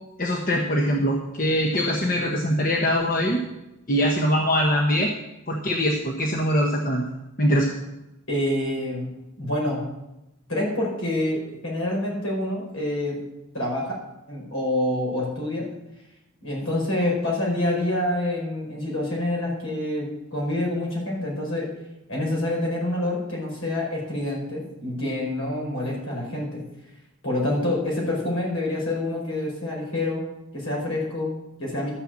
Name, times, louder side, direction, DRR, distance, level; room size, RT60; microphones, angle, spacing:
voice 1, 0.2-3.4 3.9-5.1 5.5-7.0 7.4-7.7, equal, 40° left, 0 dB, 1.2 m, -22 dB
voice 2, 8.3-9.1 9.4-9.9 10.5-13.2 13.5-14.0 14.3-15.7 16.4-21.7 22.1-26.6 27.2-30.2 30.5-31.9, left 1 dB, 70° left, -2 dB, 5.3 m, -27 dB
13.0 x 6.7 x 7.6 m, 0.93 s
head